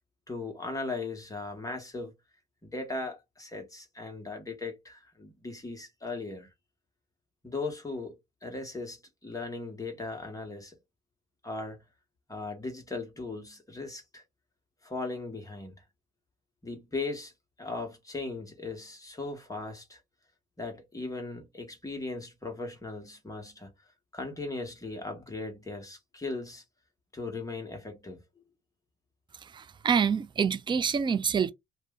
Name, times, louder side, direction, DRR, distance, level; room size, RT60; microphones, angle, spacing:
voice 1, 0.3-2.1 2.6-6.5 7.4-8.1 8.4-10.7 11.4-11.8 12.3-14.2 14.8-15.7 16.6-17.3 17.6-20.0 20.6-23.7 24.1-26.6 27.1-28.2, left 3 dB, 15° left, 1.1 m, -38 dB
voice 2, 29.4-31.5, right 6 dB, 25° right, 0.4 m, -27 dB
2.6 x 2.2 x 3.5 m
cardioid pair, 90°, 20 cm